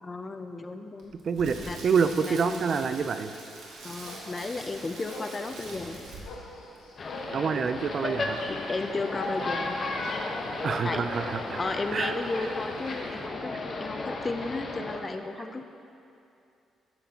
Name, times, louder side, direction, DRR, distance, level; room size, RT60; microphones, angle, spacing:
voice 1, 0.0-1.1 1.6-1.8 2.2-2.8 3.8-6.0 8.5-9.9 10.8-11.1 11.6-15.6, left 3 dB, 30° left, 7 dB, 0.5 m, -34 dB
Crackle, 1.0-6.5 6.8-6.9, right 2 dB, 80° right, 1.7 m, -44 dB
voice 2, 1.2-3.3 7.3-8.5 10.6-11.6 11.9-12.1, right 6 dB, 50° right, 10 dB, 0.3 m, -27 dB
sound 1, 4.0-13.2, left 2 dB, 90° left, 1.2 m, -44 dB
sound 2, 7.0-15.0, left 2 dB, 45° left, 0.9 m, -34 dB
13.5 x 5.8 x 2.8 m, 2.6 s
cardioid pair, 90°, 0 cm